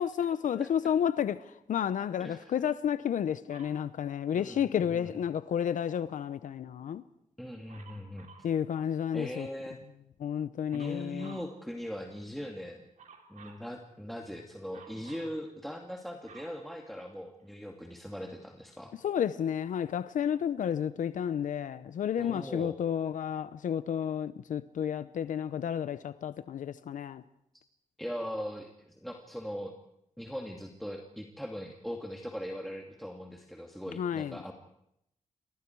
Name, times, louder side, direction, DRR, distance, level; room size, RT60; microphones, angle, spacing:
voice 1, 0.0-7.0 8.4-9.5 10.2-11.4 19.0-27.2 34.0-34.4, left 9 dB, 80° left, 0.8 m, -31 dB
voice 2, 0.5-0.9 2.2-2.7 4.3-5.1 7.4-8.3 9.1-9.8 10.7-12.9 13.3-18.9 22.2-22.8 28.0-29.7 30.2-34.5, equal, ahead, 2.6 m, -40 dB
Dog, 3.5-3.9 7.7-8.5 10.7-11.5 13.0-13.7 14.7-15.4 15.9-17.4 18.2-18.3, right 6 dB, 75° right, 4.1 m, -54 dB
28.0 x 26.5 x 4.8 m
cardioid pair, 85°, 13 cm